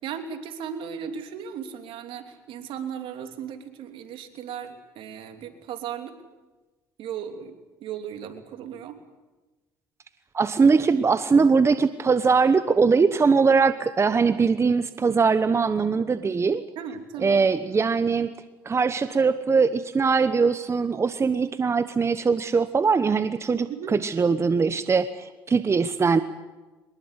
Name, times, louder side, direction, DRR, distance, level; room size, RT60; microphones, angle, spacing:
voice 1, 0.0-6.1 7.0-9.0 16.8-17.4 23.7-23.9, right 8 dB, 70° right, 7 dB, 3.0 m, -36 dB
voice 2, 10.3-16.6 17.2-18.3 18.6-26.2, right 5 dB, 30° right, 12 dB, 1.1 m, -21 dB
23.5 x 21.0 x 8.2 m, 1.2 s
supercardioid pair, 70°, 9 cm